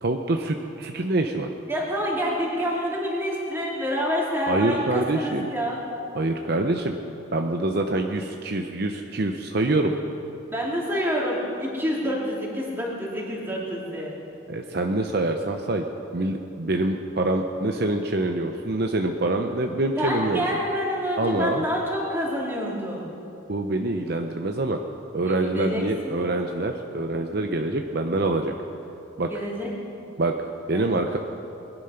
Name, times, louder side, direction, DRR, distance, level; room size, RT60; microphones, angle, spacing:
voice 1, 0.0-1.5 4.5-5.5 6.1-6.9 7.3-9.9 14.5-15.8 16.1-20.4 21.2-21.7 23.5-24.8 25.1-28.5 29.2-29.3 30.2-30.3 30.7-31.2, right 2 dB, 50° right, 4 dB, 0.7 m, -25 dB
voice 2, 1.7-5.8 10.5-14.1 20.0-23.1 25.2-26.5 29.3-29.7 30.7-30.9, equal, 10° right, -4 dB, 2.9 m, -28 dB
21.5 x 11.0 x 5.8 m, 2.9 s
head